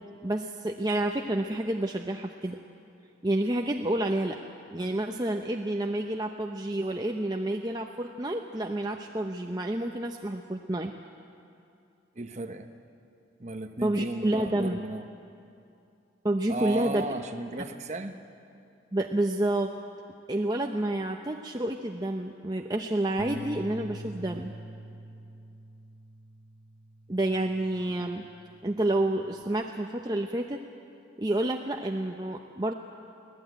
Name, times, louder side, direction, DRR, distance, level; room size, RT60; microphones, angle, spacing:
voice 1, 0.0-2.6 3.2-4.4 4.7-10.9 13.8-14.8 16.2-17.1 18.9-19.7 20.3-24.5 27.1-28.2 28.6-30.6 31.2-32.7, right 1 dB, 20° right, 3 dB, 0.7 m, -29 dB
voice 2, 12.2-12.7 13.4-15.1 16.5-18.2, right 2 dB, 35° right, 7 dB, 1.1 m, -35 dB
sound 1, 23.2-29.4, equal, 25° left, 1.6 m, -45 dB
24.0 x 17.0 x 9.2 m, 2.6 s
head